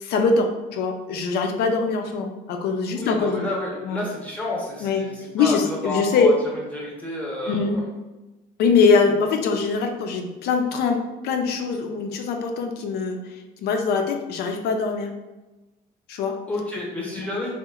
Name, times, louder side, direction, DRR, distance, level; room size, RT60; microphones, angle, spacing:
voice 1, 0.0-3.5 3.9-4.0 4.8-5.0 5.3-6.3 7.5-7.8 8.6-13.2 13.6-15.1 16.1-16.4, left 5 dB, 70° left, 4 dB, 0.4 m, -22 dB
voice 2, 2.9-7.8 16.5-17.6, left 1 dB, 10° left, -4 dB, 0.8 m, -30 dB
2.9 x 2.0 x 2.3 m, 1.1 s
cardioid pair, 110°, 17 cm